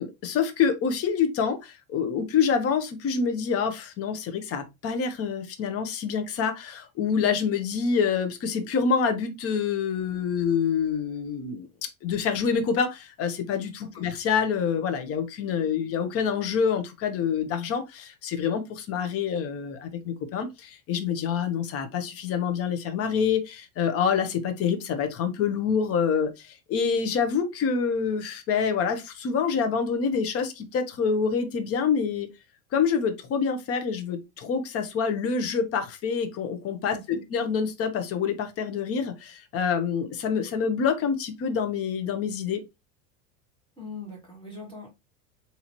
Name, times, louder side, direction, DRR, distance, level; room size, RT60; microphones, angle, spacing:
voice 1, 0.0-11.7 12.0-32.3 32.7-42.6, left 6 dB, 35° left, 0.8 m, -26 dB
voice 2, 43.8-44.9, left 3 dB, 10° left, 2.1 m, -41 dB
3.9 x 2.8 x 2.9 m
supercardioid pair, 125°, 41 cm